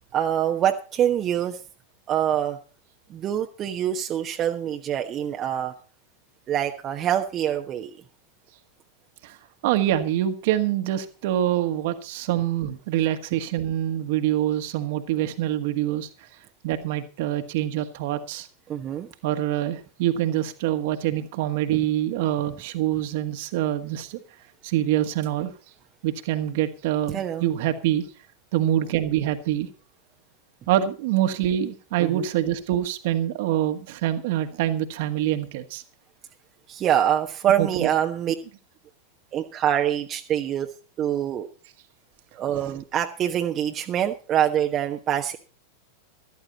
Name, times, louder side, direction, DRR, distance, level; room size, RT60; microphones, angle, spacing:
voice 1, 0.1-1.6 2.1-2.6 3.1-5.7 6.5-7.9 18.7-19.1 21.7-21.8 27.1-27.4 32.0-32.3 36.7-38.3 39.3-40.7 41.0-41.5 42.3-45.4, right 10 dB, 30° right, 4 dB, 1.1 m, -25 dB
voice 2, 9.6-16.1 16.6-18.5 19.2-24.2 24.6-25.5 26.0-28.0 28.5-29.7 30.7-35.8 37.6-37.9, right 12 dB, 50° right, 8 dB, 1.6 m, -25 dB
14.0 x 13.5 x 4.1 m, 0.35 s
figure-of-eight pair, 90°, 0 cm